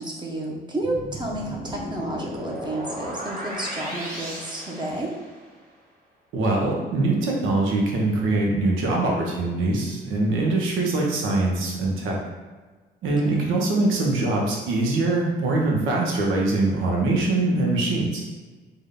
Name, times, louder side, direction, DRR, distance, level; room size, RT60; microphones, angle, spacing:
voice 1, 0.0-5.1 13.0-13.5, right 1 dB, 20° right, -2 dB, 0.7 m, -31 dB
sound 1, 0.8-5.6, equal, 45° right, 1.2 m, -35 dB
voice 2, 6.3-12.2 13.0-18.2, right 2 dB, 90° right, -1 dB, 0.8 m, -23 dB
3.6 x 2.2 x 3.7 m, 1.3 s
cardioid pair, 90°, 20 cm